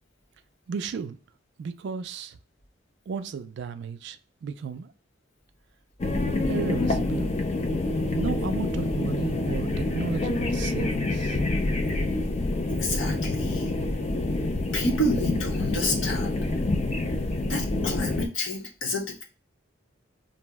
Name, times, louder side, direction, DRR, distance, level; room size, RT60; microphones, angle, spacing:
voice 1, 0.7-1.2 1.6-2.4 3.1-4.9 6.5-7.3 8.2-11.4, right 6 dB, 60° right, 0.3 m, -34 dB
sound 1, 6.0-18.3, left 2 dB, 35° left, 0.4 m, -27 dB
voice 2, 12.7-13.7 14.7-16.3 17.4-19.2, left 1 dB, 85° left, 0.8 m, -29 dB
2.6 x 2.0 x 3.4 m
head